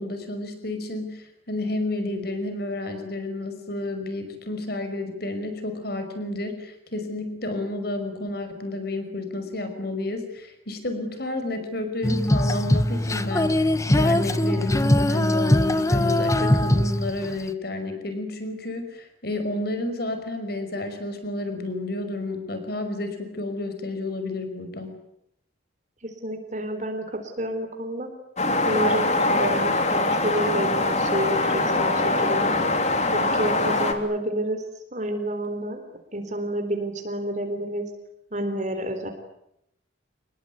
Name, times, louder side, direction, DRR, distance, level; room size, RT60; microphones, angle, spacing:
voice 1, 0.0-24.9, left 2 dB, 50° left, 8 dB, 5.5 m, -31 dB
Female singing, 12.0-17.5, left 1 dB, 15° left, 1.1 m, -21 dB
voice 2, 26.0-28.1 28.7-32.5 33.1-34.6 34.9-35.8 36.1-37.9 38.3-39.1, right 1 dB, 40° right, 6 dB, 4.0 m, -29 dB
sound 1, 28.4-33.9, left 2 dB, 35° left, 3.2 m, -23 dB
27.5 x 21.5 x 9.6 m, 0.80 s
head